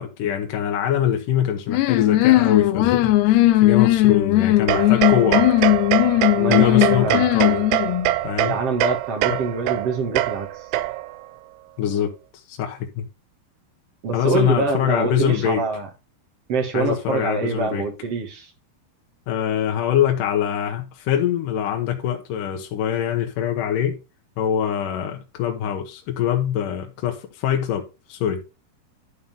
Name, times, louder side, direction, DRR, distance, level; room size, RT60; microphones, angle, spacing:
voice 1, 0.0-5.5 6.5-7.7 8.2-8.6 9.3-9.4 11.8-13.1 14.1-15.6 16.7-17.9 19.3-24.0 24.4-28.4, left 9 dB, 65° left, 2.3 m, -24 dB
sound 1, 1.7-8.1, left 16 dB, 90° left, 2.8 m, -18 dB
sound 2, 4.7-11.3, right 15 dB, 80° right, 2.5 m, -24 dB
voice 2, 6.4-7.2 8.4-10.7 14.0-15.9 16.5-18.5, right 4 dB, 50° right, 2.2 m, -25 dB
11.5 x 4.3 x 5.3 m
omnidirectional pair, 4.7 m